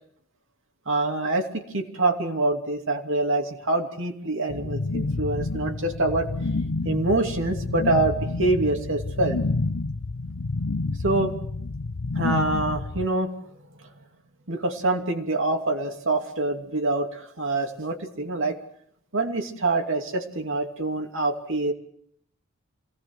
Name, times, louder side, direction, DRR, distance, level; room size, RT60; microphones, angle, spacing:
voice 1, 0.9-6.3 6.8-9.4 11.0-11.3 12.1-13.3 13.6-13.7 14.5-18.6 19.1-21.7, right 2 dB, 65° right, 4 dB, 2.7 m, -25 dB
sound 1, 4.5-13.0, left 3 dB, 80° left, 0.8 m, -29 dB
26.5 x 18.0 x 6.3 m, 0.68 s
head